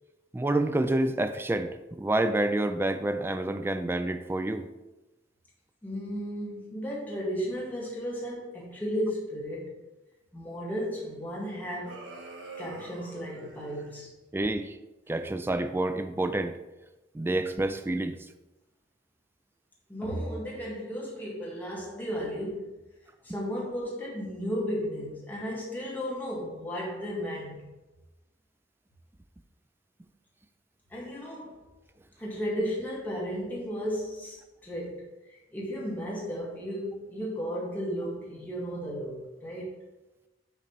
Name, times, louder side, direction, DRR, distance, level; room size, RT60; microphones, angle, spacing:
voice 1, 0.3-4.7 14.3-14.7 15.1-16.6 17.1-18.2, right 1 dB, 10° right, 9 dB, 0.3 m, -28 dB
voice 2, 5.8-9.8 10.3-12.0 12.6-14.1 19.9-22.7 23.2-27.6 30.9-31.6 32.2-35.0 35.5-39.8, equal, 10° left, -6 dB, 1.8 m, -34 dB
sound 1, 11.8-14.0, right 2 dB, 85° right, 1.2 m, -45 dB
6.0 x 4.0 x 4.5 m, 1.1 s
head